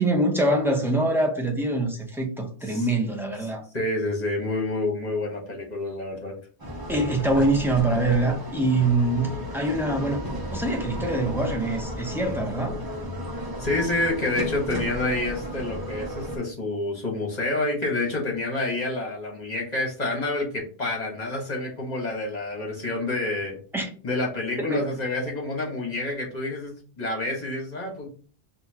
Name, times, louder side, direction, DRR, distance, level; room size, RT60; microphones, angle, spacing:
voice 1, 0.0-3.6 6.9-12.8 23.7-23.9 24.6-24.9, right 2 dB, ahead, 0.8 m, -24 dB
voice 2, 3.7-6.3 7.4-7.5 13.6-23.6 24.0-28.1, left 2 dB, 40° left, 1.6 m, -28 dB
sound 1, 6.6-16.4, equal, 20° right, 1.1 m, -34 dB
5.5 x 2.8 x 2.9 m
omnidirectional pair, 1.1 m